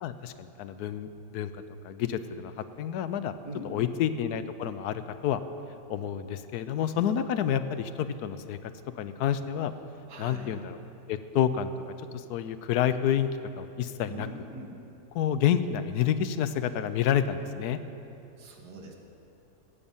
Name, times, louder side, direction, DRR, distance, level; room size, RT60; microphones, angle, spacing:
voice 1, 0.0-3.3 3.7-5.4 5.9-9.7 10.2-10.8 11.1-11.7 12.1-13.3 13.6-14.3 15.1-17.8, left 9 dB, 80° left, 12 dB, 1.1 m, -29 dB
voice 2, 3.5-3.9 10.1-10.6 14.1-14.7 18.4-18.9, right 1 dB, 80° right, 2 dB, 1.9 m, -42 dB
15.5 x 8.8 x 5.5 m, 2.9 s
omnidirectional pair, 1.7 m